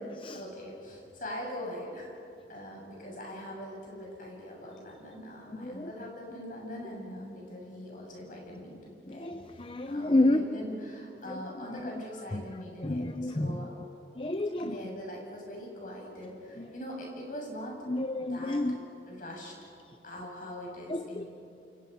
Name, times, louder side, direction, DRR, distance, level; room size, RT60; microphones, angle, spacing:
voice 1, 0.3-2.1 2.5-9.4 9.9-13.7 14.6-17.8 18.2-18.6 19.1-19.5 20.0-21.3, equal, 45° left, -1 dB, 7.7 m, -42 dB
voice 2, 9.1-10.4 11.3-11.4 11.7-11.9 12.3-12.4 12.8-13.6 14.2-14.8 17.9-18.8 20.9-21.2, left 2 dB, 30° left, 9 dB, 0.7 m, -29 dB
29.5 x 29.0 x 5.7 m, 2.7 s
head